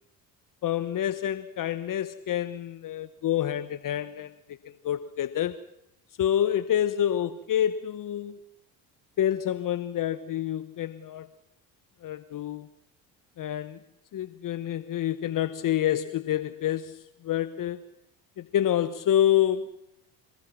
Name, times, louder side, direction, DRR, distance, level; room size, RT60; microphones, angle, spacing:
voice 1, 0.6-5.6 6.2-8.4 9.2-11.3 12.0-12.7 13.4-13.8 14.1-17.8 18.4-19.7, left 11 dB, 50° left, 1.2 m, -28 dB
26.5 x 20.5 x 5.9 m
supercardioid pair, 75°, 42 cm